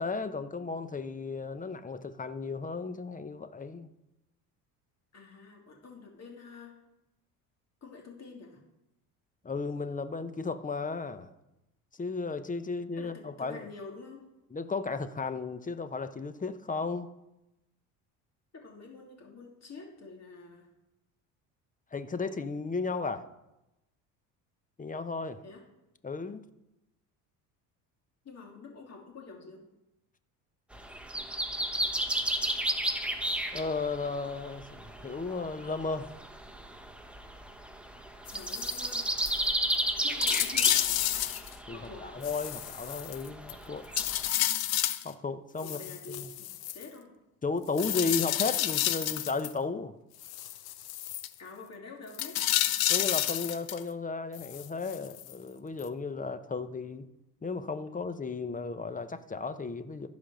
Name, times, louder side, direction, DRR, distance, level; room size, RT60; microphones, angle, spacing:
voice 1, 0.0-3.9 9.4-11.3 11.9-13.7 14.5-17.1 21.9-23.3 24.8-25.4 26.0-26.4 33.5-36.1 41.7-43.9 45.0-45.8 46.2-46.3 47.4-49.9 52.9-57.1 57.4-60.1, left 4 dB, 20° left, 11 dB, 0.8 m, -34 dB
voice 2, 5.1-6.8 7.8-8.6 13.0-14.2 18.5-20.7 25.4-25.7 28.2-29.6 38.3-39.1 40.0-41.0 41.7-42.2 45.6-47.1 51.4-52.4, left 4 dB, 40° left, 0 dB, 2.8 m, -47 dB
sound 1, 30.7-44.3, right 1 dB, 5° right, 1.2 m, -34 dB
sound 2, 38.3-38.9 39.3-39.4 39.7-39.8 40.2-41.5 42.2-43.5 44.0-45.1 45.6-46.9 47.8-49.5 50.2-51.3 52.1-53.8 54.3-55.3 55.8-55.9, left 13 dB, 60° left, 0.9 m, -30 dB
14.0 x 5.3 x 6.3 m, 0.93 s
supercardioid pair, 85°, 41 cm